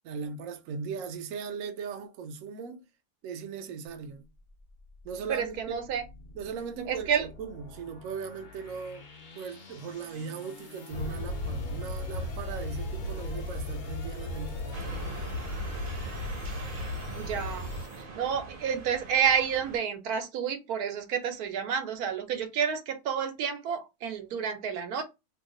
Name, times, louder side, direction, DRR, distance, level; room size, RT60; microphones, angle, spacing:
voice 1, 0.0-2.8 3.2-4.3 5.0-5.9 6.4-9.1 9.3-15.2, right 5 dB, 70° right, 0.9 m, -38 dB
sound 1, 3.9-18.0, left 3 dB, 55° left, 0.5 m, -51 dB
voice 2, 5.3-6.0 6.9-7.3 17.1-25.0, right 7 dB, 90° right, 1.2 m, -30 dB
sound 2, 10.9-17.8, left 1 dB, 75° left, 1.0 m, -35 dB
sound 3, 14.7-19.8, right 3 dB, 50° right, 0.7 m, -42 dB
2.8 x 2.3 x 3.7 m
omnidirectional pair, 1.6 m